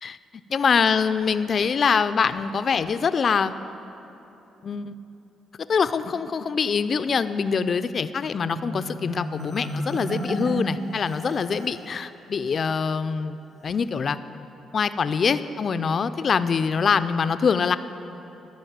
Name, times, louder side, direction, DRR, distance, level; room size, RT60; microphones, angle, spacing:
voice 1, 0.5-3.5 4.6-5.0 5.7-13.4 13.6-14.2 14.7-17.8, left 6 dB, 45° left, 13 dB, 0.4 m, -24 dB
Marimba xylophone, 8.5-11.9, right 2 dB, 45° right, 2.3 m, -32 dB
13.0 x 5.4 x 7.3 m, 2.9 s
cardioid pair, 90°, 0 cm